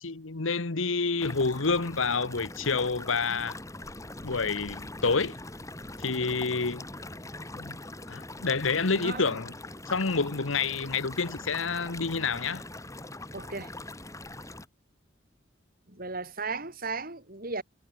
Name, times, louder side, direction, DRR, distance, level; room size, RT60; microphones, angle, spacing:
voice 1, 0.0-3.6 4.2-5.4 6.0-6.8 7.5-7.8 8.1-9.5 9.9-12.6, left 4 dB, 85° left, 1.3 m, -28 dB
sound 1, 1.2-14.7, left 2 dB, 15° left, 3.1 m, -42 dB
voice 2, 9.0-9.4 13.3-13.7 15.9-17.6, right 3 dB, 45° right, 4.6 m, -36 dB
head